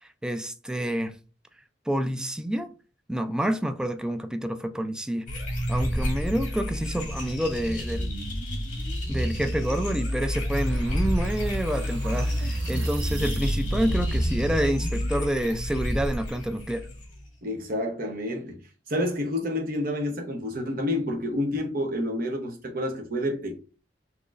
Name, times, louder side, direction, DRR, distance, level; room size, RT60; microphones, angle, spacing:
voice 1, 0.2-1.1 1.9-2.7 3.1-5.2 5.7-8.1 9.1-16.9, right 1 dB, 5° right, 0.3 m, -28 dB
sound 1, 5.3-17.2, equal, 45° left, 2.3 m, -29 dB
sound 2, 10.5-14.6, right 3 dB, 80° right, 0.5 m, -38 dB
voice 2, 17.4-18.6 18.9-23.6, left 1 dB, 55° right, 0.9 m, -29 dB
6.1 x 2.9 x 2.5 m
head